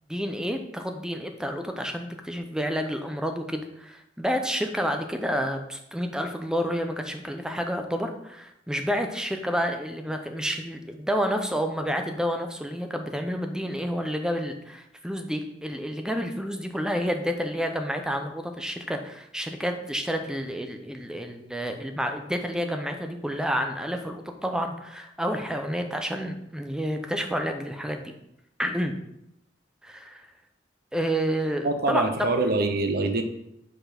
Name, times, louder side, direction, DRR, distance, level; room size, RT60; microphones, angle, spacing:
voice 1, 0.1-28.0 28.6-29.0 29.8-30.2 30.9-32.3, equal, 5° right, 5 dB, 0.6 m, -29 dB
voice 2, 31.6-33.2, right 2 dB, 55° right, 7 dB, 0.8 m, -24 dB
5.5 x 4.4 x 5.8 m, 0.80 s
head